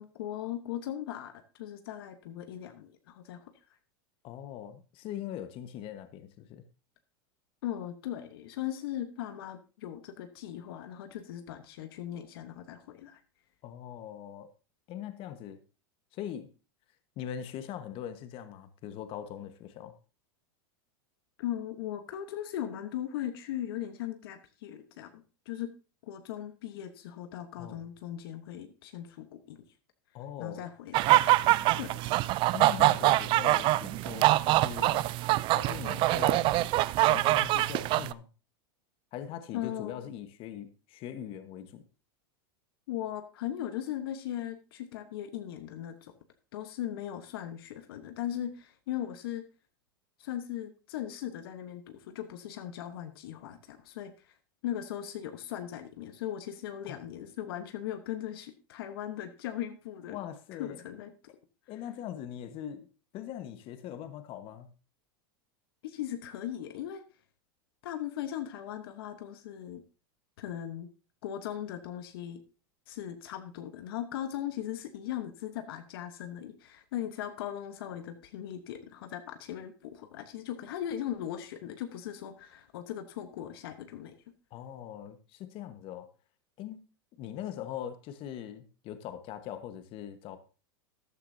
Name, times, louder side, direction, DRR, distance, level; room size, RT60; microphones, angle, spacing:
voice 1, 0.0-3.5 7.6-13.2 21.4-25.7 26.0-29.6 30.4-31.1 31.7-32.0 39.5-40.0 42.9-46.1 46.5-49.5 50.2-54.1 54.6-60.2 60.6-61.1 65.8-67.0 67.8-69.8 70.4-70.9 71.2-72.4 72.9-84.2, left 11 dB, 75° left, 8 dB, 1.2 m, -38 dB
voice 2, 4.2-6.6 13.6-14.5 14.9-15.6 16.1-16.5 17.2-20.0 27.6-27.9 30.1-30.6 31.5-31.6 32.5-35.1 35.5-36.5 37.1-38.3 39.1-41.8 56.9-57.0 60.1-60.8 61.7-62.9 63.1-64.7 84.5-86.1 86.6-86.8 87.2-90.4, left 10 dB, 45° left, 9 dB, 1.3 m, -41 dB
sound 1, 30.9-38.1, right 17 dB, 40° right, 0.4 m, -24 dB
13.5 x 10.0 x 2.7 m, 0.32 s
supercardioid pair, 120°, 13 cm